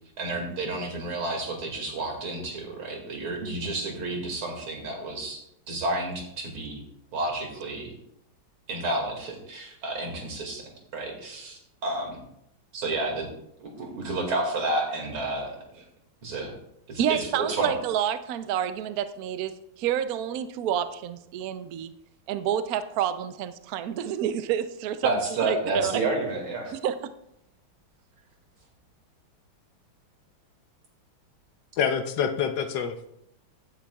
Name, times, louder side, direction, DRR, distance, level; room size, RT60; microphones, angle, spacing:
voice 1, 0.2-6.8 7.1-7.9 8.7-10.6 10.9-12.2 12.7-13.3 13.6-15.8 16.2-16.5 16.9-17.8 25.0-26.7, right 2 dB, 90° right, 1 dB, 3.2 m, -31 dB
voice 2, 17.0-21.9 22.3-26.0 26.7-26.9, right 9 dB, 70° right, 11 dB, 0.9 m, -29 dB
voice 3, 31.8-33.1, left 7 dB, 65° left, 7 dB, 1.3 m, -26 dB
16.0 x 10.0 x 2.4 m, 0.77 s
omnidirectional pair, 2.2 m